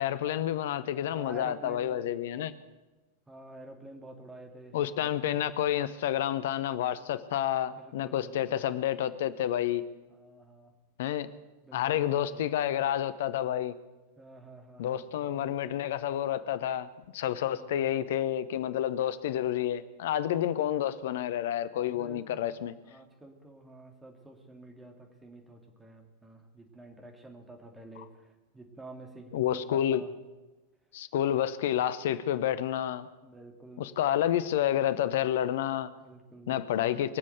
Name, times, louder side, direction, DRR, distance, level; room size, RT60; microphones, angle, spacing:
voice 1, 0.0-2.5 4.7-9.8 11.0-11.3 11.7-13.8 14.8-16.9 17.1-22.7 29.3-30.0 30.9-33.1 33.8-35.9 36.5-37.2, left 11 dB, 55° left, 15 dB, 0.8 m, -29 dB
voice 2, 1.1-1.9 2.3-2.5 3.3-5.1 7.7-8.6 10.1-10.7 11.6-12.4 14.2-15.8 17.3-17.9 21.9-22.4 22.8-30.1 33.2-33.9 36.0-36.9, right 1 dB, 10° right, 3 dB, 2.7 m, -49 dB
22.5 x 7.6 x 8.2 m, 1.2 s
figure-of-eight pair, 90°, 0 cm